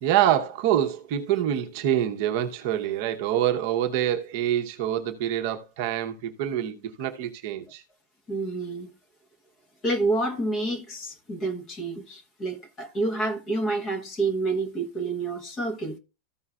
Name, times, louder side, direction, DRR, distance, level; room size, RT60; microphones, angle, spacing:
voice 1, 0.0-7.8, right 11 dB, 40° right, 0.9 m, -26 dB
voice 2, 8.3-8.9 9.8-16.0, right 2 dB, 15° left, 1.1 m, -28 dB
14.5 x 5.5 x 2.4 m
supercardioid pair, 180°, 0 cm